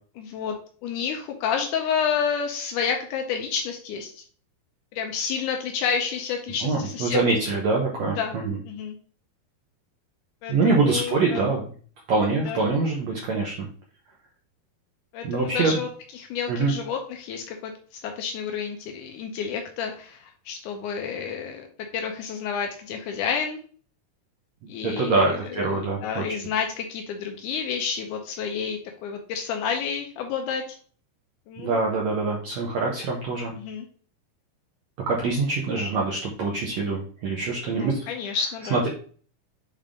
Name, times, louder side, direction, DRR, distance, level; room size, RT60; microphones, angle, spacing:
voice 1, 0.2-0.6 0.8-4.2 4.9-7.2 8.2-8.4 8.6-9.0 10.4-11.5 12.4-12.7 15.1-23.6 24.7-30.7 31.5-31.8 33.6-33.9 37.7-38.9, left 6 dB, 90° left, 3 dB, 1.8 m, -30 dB
voice 2, 6.6-8.6 10.5-11.7 12.1-13.7 15.2-15.8 16.5-16.7 24.8-26.2 31.6-33.5 35.1-38.1 38.7-38.9, right 3 dB, 90° right, -1 dB, 1.5 m, -24 dB
7.0 x 3.8 x 3.5 m, 0.43 s
omnidirectional pair, 4.5 m